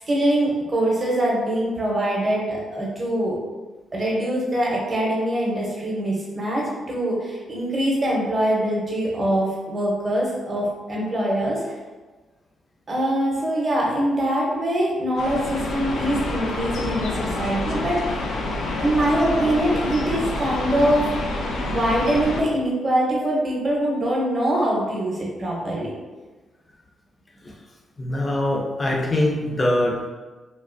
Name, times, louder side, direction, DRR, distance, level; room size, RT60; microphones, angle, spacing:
voice 1, 0.1-3.4 3.9-11.6 12.9-18.2 18.8-21.1 21.7-25.9, right 1 dB, 25° right, -3 dB, 0.7 m, -23 dB
sound 1, 15.2-22.4, left 2 dB, 75° left, 0.4 m, -27 dB
voice 2, 28.0-30.1, left 1 dB, 20° left, -1 dB, 0.5 m, -23 dB
3.1 x 2.4 x 2.5 m, 1.3 s
wide cardioid pair, 165°, 0 cm